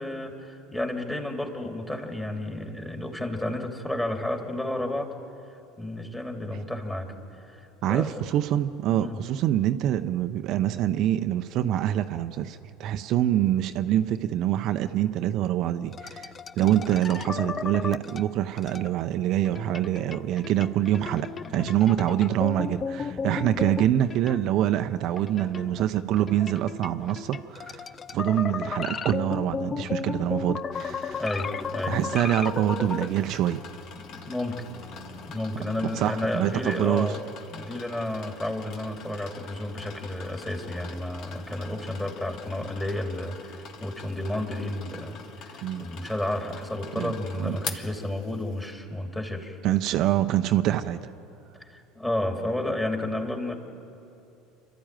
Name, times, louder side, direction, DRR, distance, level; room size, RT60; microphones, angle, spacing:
voice 1, 0.0-5.1 5.8-7.1 7.4-8.4 9.0-9.2 30.7-30.8 31.2-32.0 33.9-34.6 35.3-37.2 37.5-49.6 51.6-53.5, left 1 dB, 10° left, 3 dB, 3.0 m, -32 dB
voice 2, 7.8-31.2 31.9-33.6 35.9-37.1 45.6-45.8 47.0-47.6 49.6-51.0, right 12 dB, 55° right, 8 dB, 0.7 m, -25 dB
sound 1, 15.9-18.9 19.4-24.7 25.1-33.1, left 6 dB, 30° left, 0.5 m, -34 dB
sound 2, 30.7-48.7, left 5 dB, 55° left, 1.8 m, -44 dB
27.5 x 12.5 x 9.1 m, 2.8 s
hypercardioid pair, 75°, 0 cm